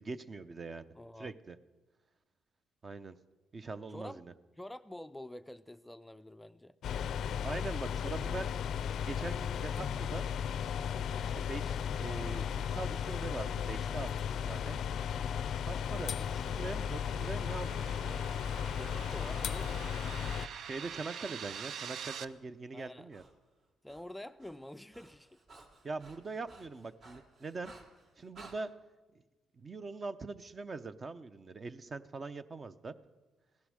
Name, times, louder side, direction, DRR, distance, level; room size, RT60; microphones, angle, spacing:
voice 1, 0.0-0.9 1.2-1.6 2.8-3.1 3.5-4.3 7.4-8.5 9.0-10.3 11.2-14.8 15.6-18.2 20.7-23.2 25.8-27.7 28.2-28.7 29.6-32.9, right 3 dB, 35° right, 11 dB, 0.7 m, -42 dB
voice 2, 0.9-1.3 3.9-4.2 4.6-6.8 18.7-20.0 22.7-23.1 23.8-25.4, left 1 dB, 5° left, 11 dB, 0.4 m, -47 dB
sound 1, 6.8-20.5, left 8 dB, 70° left, 0.4 m, -35 dB
sound 2, 14.5-22.2, right 8 dB, 70° right, 0.5 m, -47 dB
Breathing, 19.5-22.4 23.1-23.3 23.6-28.6, right 3 dB, 55° right, 3.6 m, -58 dB
16.5 x 11.5 x 6.4 m, 1.2 s
cardioid pair, 90°, 0 cm